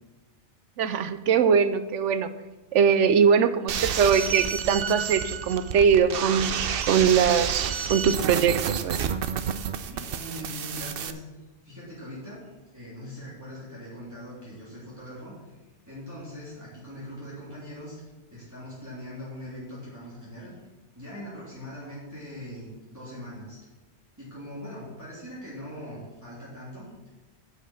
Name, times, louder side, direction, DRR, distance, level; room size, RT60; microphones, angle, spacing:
voice 1, 0.8-2.3 2.7-6.6 6.9-9.0, right 7 dB, 85° right, 12 dB, 1.0 m, -22 dB
sound 1, 3.7-11.1, right 7 dB, 60° right, 0.7 m, -30 dB
voice 2, 9.9-11.2 11.6-15.5 15.9-18.0 18.3-20.5 20.9-23.6 24.2-26.9, left 1 dB, 15° right, -9 dB, 3.4 m, -41 dB
9.1 x 6.0 x 7.3 m, 1.1 s
omnidirectional pair, 1.2 m